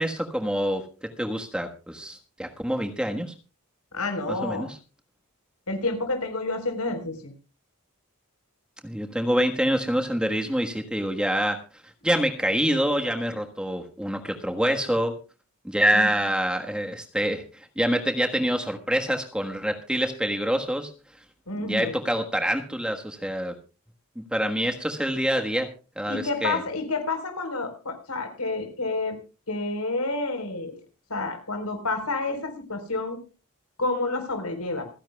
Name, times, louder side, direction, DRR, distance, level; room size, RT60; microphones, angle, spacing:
voice 1, 0.0-3.3 4.3-4.7 8.8-11.6 12.0-15.1 15.6-20.9 21.6-23.6 24.1-26.6, equal, 5° right, 4 dB, 1.4 m, -26 dB
voice 2, 3.9-4.7 5.7-7.3 15.9-16.1 21.5-21.9 26.1-29.2 29.5-30.8 31.1-33.2 33.8-34.9, left 2 dB, 85° left, 6 dB, 4.2 m, -29 dB
27.0 x 10.5 x 2.3 m, 0.33 s
head